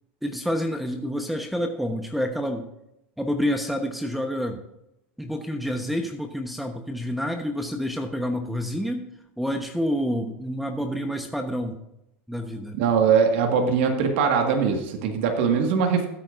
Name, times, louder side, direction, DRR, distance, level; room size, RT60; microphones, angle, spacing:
voice 1, 0.2-2.7 3.2-4.6 5.2-9.1 9.4-11.8 12.3-12.8, equal, ahead, 5 dB, 1.1 m, -28 dB
voice 2, 12.8-16.1, right 6 dB, 70° right, 4 dB, 1.8 m, -21 dB
15.5 x 9.0 x 2.6 m, 0.85 s
hypercardioid pair, 95°, 6 cm